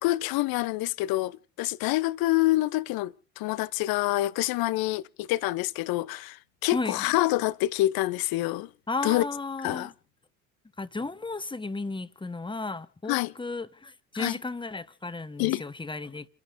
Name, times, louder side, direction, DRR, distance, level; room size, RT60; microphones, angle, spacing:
voice 1, 0.0-8.7 9.0-9.3 9.6-9.9 13.1-13.3 14.2-14.4 15.4-15.6, left 17 dB, 50° left, 0.8 m, -27 dB
voice 2, 6.7-7.0 8.9-9.9 10.8-16.3, left 3 dB, 10° left, 1.3 m, -34 dB
30.0 x 11.5 x 2.6 m
hypercardioid pair, 65°, 45 cm